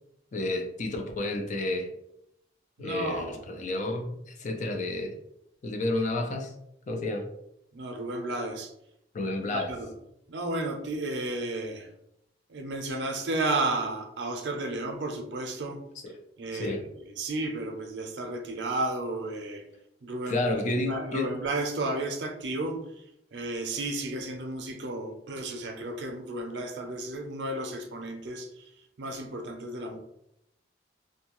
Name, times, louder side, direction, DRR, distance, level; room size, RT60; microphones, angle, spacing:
voice 1, 0.3-1.9 2.8-5.1 5.6-6.5 6.9-7.3 9.1-9.7 16.0-16.1 16.5-16.8 20.3-21.3, left 2 dB, 45° left, 4 dB, 0.4 m, -30 dB
voice 2, 2.8-3.6 7.7-8.7 9.5-9.9 10.3-11.9 12.5-15.8 16.4-19.6 20.0-22.8 23.3-28.7 29.0-30.0, right 2 dB, 85° right, 4 dB, 0.5 m, -33 dB
2.6 x 2.2 x 2.9 m, 0.79 s
head